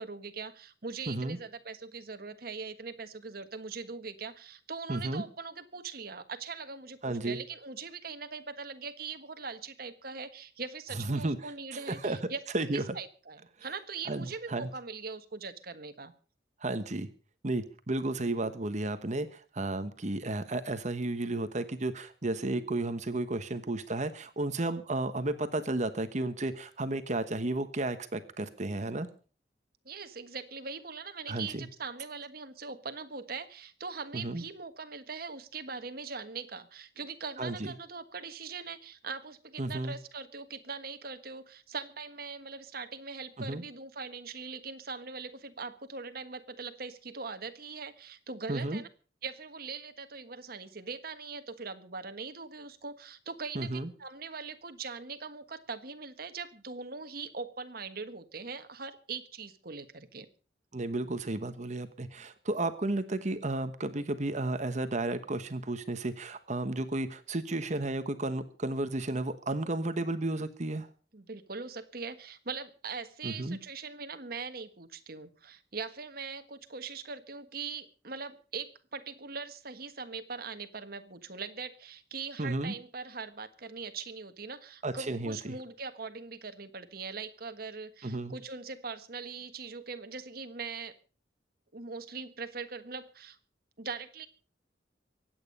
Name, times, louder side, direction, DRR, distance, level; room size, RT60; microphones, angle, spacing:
voice 1, 0.0-12.6 12.9-16.1 29.8-48.9 49.2-53.7 54.0-60.3 71.1-90.9 91.7-93.4 93.8-94.3, right 4 dB, 60° right, 9 dB, 1.5 m, -41 dB
voice 2, 1.1-1.4 4.9-5.2 7.0-7.4 11.0-12.2 12.5-13.0 14.1-14.7 16.6-17.1 17.4-29.1 31.3-31.7 34.1-34.4 37.4-37.7 39.6-40.0 43.5-43.6 48.5-48.8 53.5-53.9 60.7-70.9 73.2-73.6 82.4-82.7 84.8-85.4 88.0-88.4, right 2 dB, 40° right, 11 dB, 1.2 m, -33 dB
23.5 x 9.2 x 5.4 m, 0.40 s
head